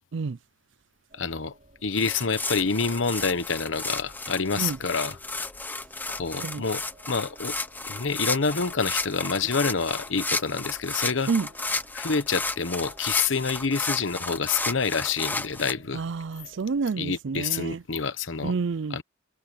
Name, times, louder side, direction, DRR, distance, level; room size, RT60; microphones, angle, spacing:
voice 1, 1.1-1.5 1.8-5.2 6.1-6.8 7.1-7.6 7.9-11.3 11.9-16.0 17.0-18.5 18.9-19.0, left 5 dB, 70° left, 1.0 m, -27 dB
sound 1, 1.1-17.1, right 1 dB, 40° right, 6.6 m, -56 dB
sound 2, 1.9-15.7, left 3 dB, 10° left, 0.9 m, -33 dB
voice 2, 15.9-17.8 18.4-19.0, right 5 dB, 65° right, 0.5 m, -29 dB
head